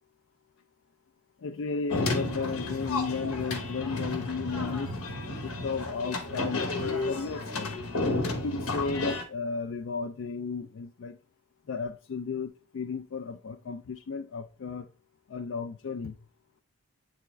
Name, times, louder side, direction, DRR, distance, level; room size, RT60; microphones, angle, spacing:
voice 1, 1.4-5.0 5.4-7.8 8.2-11.2 11.7-14.9 15.3-16.2, left 5 dB, 60° left, 0.4 m, -34 dB
sound 1, 1.9-9.2, left 2 dB, 85° left, 1.0 m, -32 dB
8.5 x 3.5 x 3.1 m
head